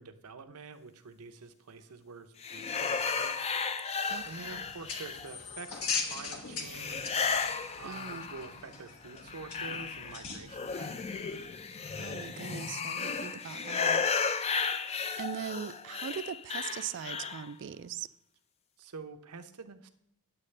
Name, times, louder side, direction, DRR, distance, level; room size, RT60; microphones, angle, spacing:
voice 1, 0.0-3.4 4.3-7.2 7.8-11.4 18.8-19.9, right 4 dB, 80° right, 8 dB, 0.7 m, -47 dB
sound 1, 2.4-5.6 6.7-8.7 9.0-17.5, left 5 dB, 30° left, 0.4 m, -34 dB
sound 2, 4.1-11.5, left 5 dB, 70° left, 1.3 m, -41 dB
voice 2, 4.1-4.6 7.8-8.3 11.9-14.0 15.2-18.1, right 8 dB, 55° right, 16 dB, 0.3 m, -40 dB
9.8 x 7.5 x 3.3 m, 0.74 s
head